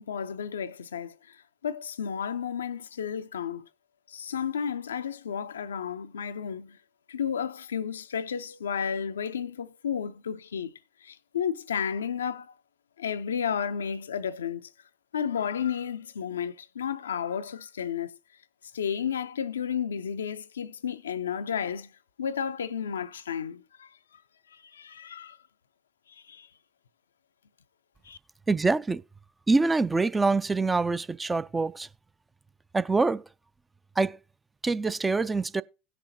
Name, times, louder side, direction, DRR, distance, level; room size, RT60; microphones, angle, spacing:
voice 1, 0.0-3.7 4.1-6.8 7.1-10.7 11.0-12.5 13.0-14.7 15.1-18.2 18.7-21.9 22.2-23.9 24.5-25.4 26.1-26.5 28.0-28.2, left 7 dB, 75° left, 0.4 m, -32 dB
voice 2, 28.5-29.0 29.5-31.9 32.7-33.2 34.0-34.2 34.6-35.6, right 3 dB, 15° right, 0.3 m, -25 dB
17.5 x 5.9 x 2.7 m
figure-of-eight pair, 75°, 0 cm